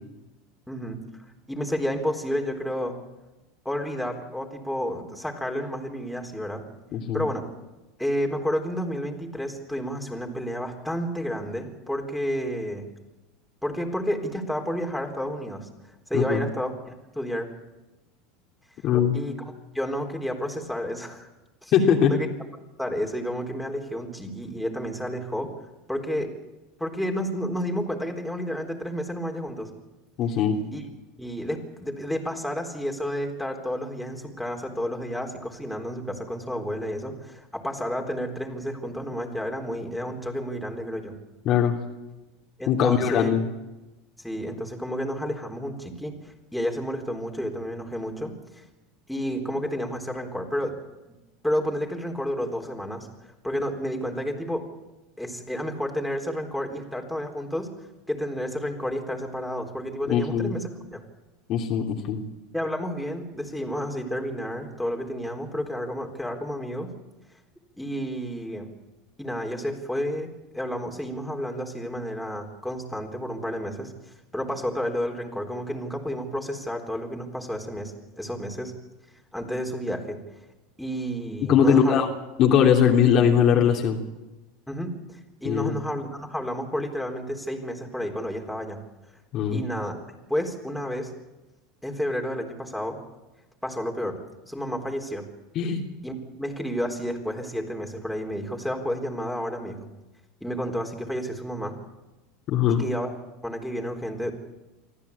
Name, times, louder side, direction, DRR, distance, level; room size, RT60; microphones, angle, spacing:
voice 1, 0.7-1.0 1.5-3.0 3.6-6.7 7.1-7.5 8.0-12.9 13.6-15.7 16.1-16.7 17.1-17.5 19.1-19.3 19.7-21.3 21.6-21.7 22.0-22.3 22.8-25.5 25.9-26.3 26.8-29.7 30.7-30.8 31.2-41.2 42.6-43.3 44.2-48.6 49.1-50.7 51.4-54.7 55.2-61.0 62.5-66.9 67.8-68.7 69.2-73.9 74.3-78.7 79.3-80.2 80.8-82.0 84.7-88.8 89.5-90.0 90.3-91.1 91.8-93.0 93.6-94.2 94.5-95.3 96.0-99.9 100.4-101.8 102.7-103.2 103.4-104.3, equal, ahead, 1 dB, 4.0 m, -31 dB
voice 2, 6.9-7.2 16.1-16.4 18.8-19.2 21.7-22.1 30.2-30.6 41.4-41.8 42.7-43.4 60.1-60.6 61.5-62.2 81.5-82.1 82.4-84.0 85.4-85.7 89.3-89.6 95.5-95.8 102.5-102.8, left 8 dB, 50° left, 1 dB, 3.1 m, -20 dB
24.5 x 14.5 x 8.6 m, 1.1 s
hypercardioid pair, 95°, 0 cm